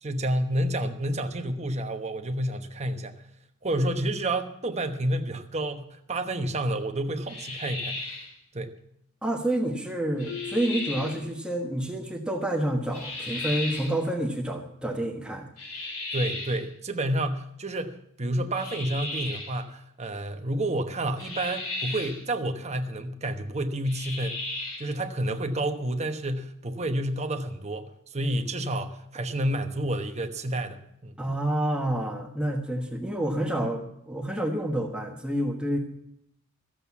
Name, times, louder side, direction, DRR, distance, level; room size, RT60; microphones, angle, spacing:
voice 1, 0.0-3.2 3.6-8.1 8.5-8.7 16.1-24.4 24.8-31.2, right 1 dB, 30° right, 6 dB, 1.1 m, -29 dB
Monster Screeching, 7.3-8.3 10.2-11.2 12.9-14.0 15.6-16.6 18.5-19.6 21.2-22.2 23.8-24.9, left 2 dB, 75° left, 4.0 m, -35 dB
voice 2, 9.2-15.5 31.2-35.8, right 1 dB, 5° right, 2 dB, 1.3 m, -28 dB
Marimba xylophone, 10.3-12.0, left 7 dB, 55° left, 0.8 m, -41 dB
14.0 x 7.8 x 8.4 m, 0.75 s
head